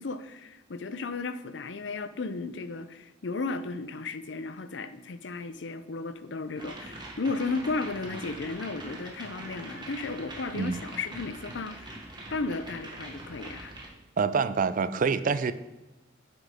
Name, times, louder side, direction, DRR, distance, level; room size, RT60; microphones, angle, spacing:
voice 1, 0.0-12.0 12.3-13.7, left 3 dB, 65° left, 12 dB, 0.6 m, -34 dB
sound 1, 6.6-13.9, right 2 dB, 25° right, 1.4 m, -43 dB
voice 2, 14.2-15.5, right 5 dB, 45° right, 13 dB, 0.4 m, -26 dB
9.0 x 7.4 x 3.6 m, 1.0 s
head